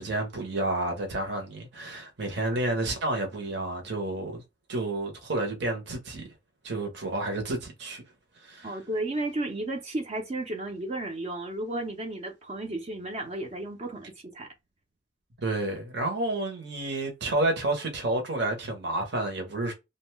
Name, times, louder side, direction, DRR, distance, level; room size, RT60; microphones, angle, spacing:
voice 1, 0.0-4.4 4.7-6.3 6.6-8.0 8.4-8.8 15.4-19.7, right 2 dB, 65° right, 0.9 m, -30 dB
voice 2, 8.6-14.5, right 2 dB, 35° right, 0.5 m, -33 dB
2.6 x 2.2 x 3.1 m
head